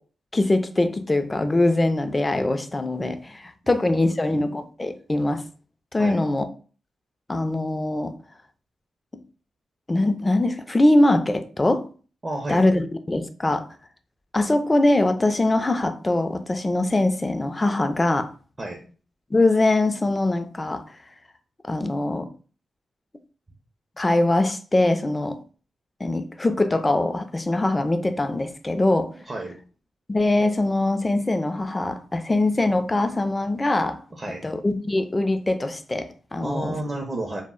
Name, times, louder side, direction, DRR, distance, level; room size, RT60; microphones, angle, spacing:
voice 1, 0.3-5.4 5.9-6.5 7.3-8.2 9.9-11.9 12.5-13.7 14.3-18.3 19.3-20.9 21.7-22.3 24.0-25.4 26.0-29.1 30.1-34.0 34.4-36.8, left 2 dB, 25° left, 0.3 m, -22 dB
voice 2, 3.6-4.0 4.3-4.4 6.0-6.2 12.2-12.7 18.6-18.9 29.3-29.6 34.1-34.5 36.4-37.4, right 2 dB, 30° right, 0.5 m, -32 dB
2.0 x 2.0 x 3.6 m
cardioid pair, 75°, 0 cm